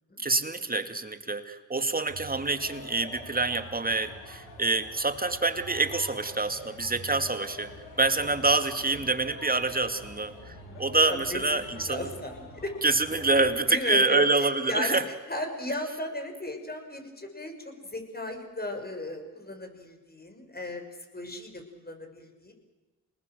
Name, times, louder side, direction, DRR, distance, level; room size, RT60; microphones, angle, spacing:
voice 1, 0.2-12.1 12.8-15.0, right 3 dB, 20° right, 9 dB, 2.6 m, -26 dB
sound 1, 2.1-13.6, left 1 dB, 85° left, 5.7 m, -45 dB
voice 2, 10.5-12.7 13.4-20.8 21.1-22.5, left 1 dB, 20° left, 4 dB, 6.8 m, -36 dB
27.5 x 20.0 x 7.9 m, 1.2 s
hypercardioid pair, 45°, 41 cm